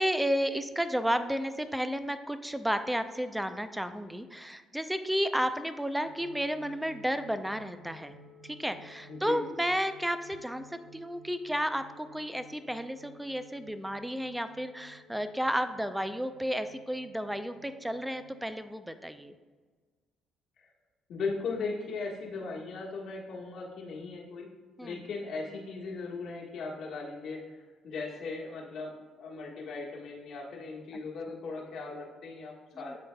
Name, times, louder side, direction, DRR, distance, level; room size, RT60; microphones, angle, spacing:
voice 1, 0.0-8.1 8.4-19.3 24.8-25.0 32.8-33.0, equal, 5° right, 10 dB, 0.5 m, -32 dB
sound 1, 6.0-18.4, equal, 65° right, 0.7 m, -56 dB
voice 2, 9.1-9.5 20.6-20.7 21.1-24.5 24.8-32.9, left 4 dB, 70° left, -3 dB, 1.4 m, -38 dB
11.0 x 3.9 x 2.3 m, 1.4 s
supercardioid pair, 70°, 0 cm